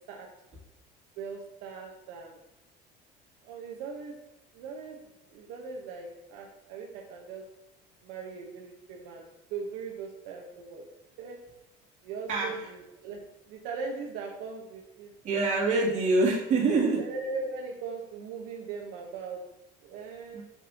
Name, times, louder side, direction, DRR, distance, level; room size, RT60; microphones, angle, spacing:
voice 1, 1.2-2.4 3.4-4.2 4.5-7.4 8.0-10.8 11.2-11.4 12.0-13.2 13.5-15.1 17.0-19.4 19.8-20.4, right 4 dB, 85° right, 0 dB, 1.2 m, -39 dB
voice 2, 15.2-17.0 20.3-20.4, right 3 dB, 45° right, -4 dB, 2.6 m, -25 dB
8.1 x 6.2 x 2.9 m, 0.96 s
cardioid pair, 145°, 18 cm